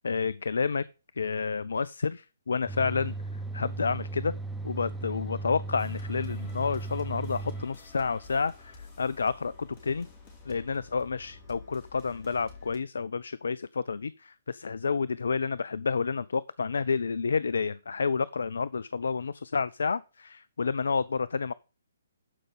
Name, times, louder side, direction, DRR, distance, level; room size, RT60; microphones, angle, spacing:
voice 1, 0.0-0.8 1.2-3.1 3.5-4.3 4.6-10.1 10.5-21.5, left 5 dB, 65° left, 0.3 m, -30 dB
sound 1, 2.7-7.6, right 3 dB, ahead, 0.9 m, -36 dB
sound 2, 5.8-12.8, left 4 dB, 25° left, 2.8 m, -50 dB
12.5 x 5.2 x 3.8 m
figure-of-eight pair, 130°, 0 cm